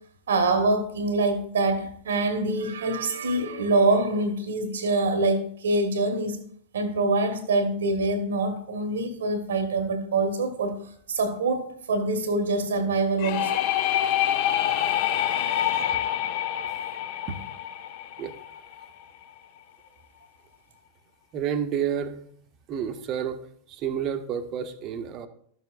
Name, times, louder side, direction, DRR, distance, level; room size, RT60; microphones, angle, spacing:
voice 1, 0.3-6.4 6.7-10.8 11.1-13.6 15.4-16.0, right 2 dB, 65° right, 1.2 m, -25 dB
sound 1, 13.2-18.8, left 11 dB, 50° left, 0.6 m, -26 dB
voice 2, 21.3-22.2 22.7-23.4 23.7-25.3, right 8 dB, 35° right, 0.9 m, -29 dB
13.5 x 6.8 x 2.5 m
figure-of-eight pair, 90°, 0 cm